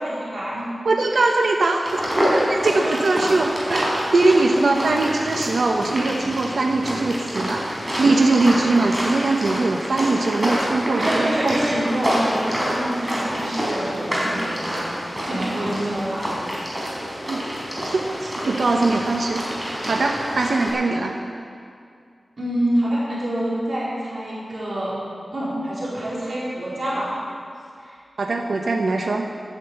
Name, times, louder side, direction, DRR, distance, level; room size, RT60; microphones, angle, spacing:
voice 1, 0.0-0.7 1.1-1.5 1.9-2.0 2.3-3.0 3.9-4.0 4.4-4.8 5.2-5.4 6.2-6.3 8.3-8.5 11.0-16.4 22.4-25.0 25.3-27.1 27.8-28.0, right 1 dB, 55° right, -8 dB, 4.5 m, -27 dB
voice 2, 0.8-7.7 8.0-11.6 17.3-17.4 17.8-19.4 19.8-21.2 28.2-29.3, right 3 dB, 85° right, 1 dB, 1.0 m, -21 dB
sound 1, 1.9-20.7, equal, 20° right, 4.5 m, -27 dB
12.0 x 10.0 x 8.0 m, 2.3 s
wide cardioid pair, 105°, 0 cm